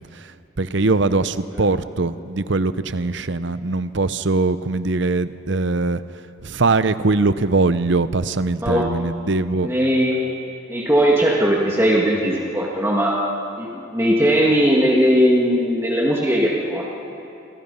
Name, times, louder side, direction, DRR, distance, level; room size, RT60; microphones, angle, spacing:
voice 1, 0.6-6.0 6.4-9.7, right 3 dB, 60° right, 13 dB, 0.7 m, -21 dB
voice 2, 9.6-10.3 10.7-13.2 13.6-17.0, equal, 10° right, -3 dB, 2.0 m, -19 dB
29.0 x 22.5 x 5.6 m, 2.8 s
head